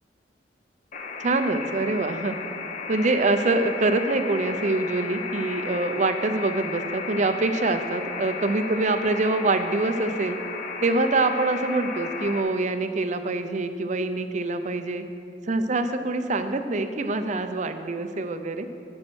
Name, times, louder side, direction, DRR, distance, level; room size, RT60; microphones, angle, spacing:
sound 1, 0.9-12.4, left 4 dB, 45° left, 1.0 m, -34 dB
voice 1, 1.2-2.4 2.9-10.4 10.8-15.0 15.5-18.7, right 2 dB, 40° right, 8 dB, 0.6 m, -25 dB
10.5 x 6.4 x 6.2 m, 2.6 s
head